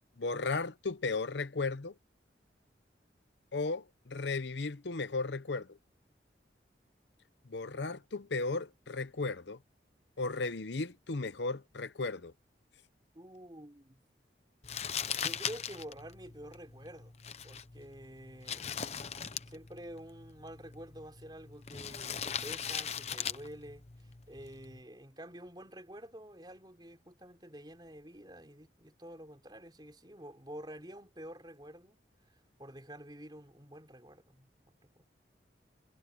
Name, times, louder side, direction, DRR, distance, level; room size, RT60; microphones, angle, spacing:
voice 1, 0.2-1.9 3.5-5.8 7.5-9.6 10.2-12.3, left 3 dB, 80° left, 0.8 m, -35 dB
voice 2, 13.1-14.0 15.1-17.1 17.4-18.7 19.5-32.0 32.6-35.0, equal, 25° right, 4.7 m, -49 dB
Crumpling crinkling, 14.6-24.8, left 7 dB, 35° left, 0.9 m, -40 dB
head